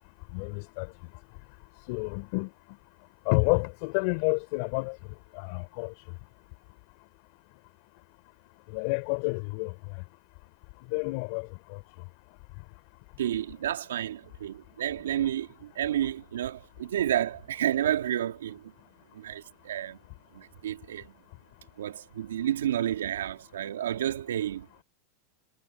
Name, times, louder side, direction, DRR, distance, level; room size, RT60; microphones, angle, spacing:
voice 1, 0.3-0.9 1.9-2.5 3.3-5.0 5.3-6.0 8.7-10.0 10.9-11.8 16.0-16.1, left 32 dB, 60° left, 3.7 m, -30 dB
voice 2, 13.2-15.5 15.8-18.6 19.1-20.0 20.3-21.1 21.8-24.7, right 11 dB, 85° right, 2.6 m, -30 dB
hypercardioid pair, 110°, 0 cm